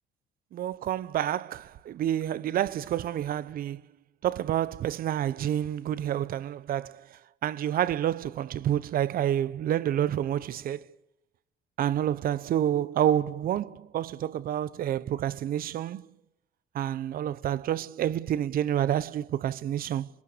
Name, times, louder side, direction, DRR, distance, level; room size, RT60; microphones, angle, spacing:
voice 1, 0.5-3.8 4.2-7.0 7.4-10.9 11.8-16.1 16.7-20.1, right 11 dB, 60° right, 0.9 m, -28 dB
27.0 x 22.0 x 6.8 m
cardioid pair, 110°, 17 cm